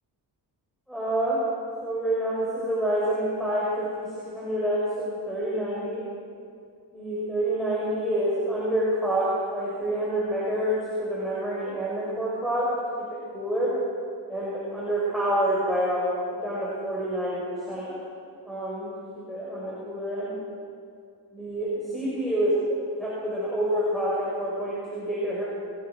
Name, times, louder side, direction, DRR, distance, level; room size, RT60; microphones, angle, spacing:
voice 1, 0.9-1.4 1.8-6.0 6.9-12.7 13.0-13.7 14.3-17.9 18.4-18.9 19.3-20.3 21.3-22.6 23.0-25.4, right 1 dB, ahead, -8 dB, 6.4 m, -27 dB
27.5 x 19.0 x 6.4 m, 2.4 s
wide cardioid pair, 140°, 43 cm